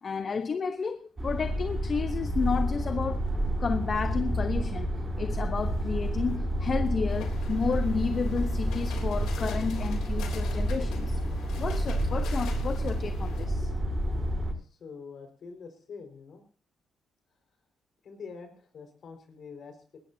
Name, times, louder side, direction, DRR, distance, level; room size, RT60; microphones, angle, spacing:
voice 1, 0.0-3.2 3.6-4.9 5.2-11.2 11.6-13.7, left 5 dB, 40° left, 0.9 m, -31 dB
sound 1, 1.2-14.5, right 1 dB, 25° right, 6.6 m, -29 dB
sound 2, 7.1-13.5, left 7 dB, 85° left, 3.4 m, -46 dB
voice 2, 14.6-16.4 18.0-20.0, left 5 dB, 60° left, 5.1 m, -45 dB
20.0 x 17.5 x 2.8 m
cardioid pair, 90°, 0 cm